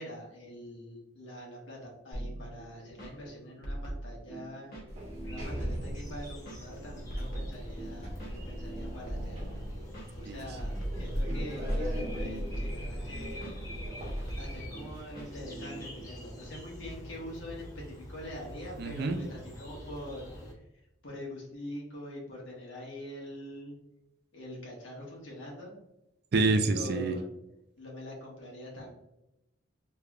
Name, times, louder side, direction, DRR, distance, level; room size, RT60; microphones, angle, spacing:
voice 1, 0.0-4.8 5.2-9.6 10.1-13.5 14.4-20.3 20.6-20.7 21.0-23.7 24.3-25.8 26.7-27.3 27.8-28.9, left 1 dB, 70° left, -2 dB, 1.4 m, -44 dB
sound 1, 2.1-16.0, right 1 dB, 50° left, 1.1 m, -42 dB
Sliding door, 4.9-15.0, equal, 35° right, 1.2 m, -38 dB
sound 2, 5.0-20.5, equal, 15° left, 0.8 m, -47 dB
voice 2, 18.8-19.2 26.3-27.2, right 3 dB, 55° right, 7 dB, 0.4 m, -27 dB
3.4 x 3.3 x 2.4 m, 0.88 s
head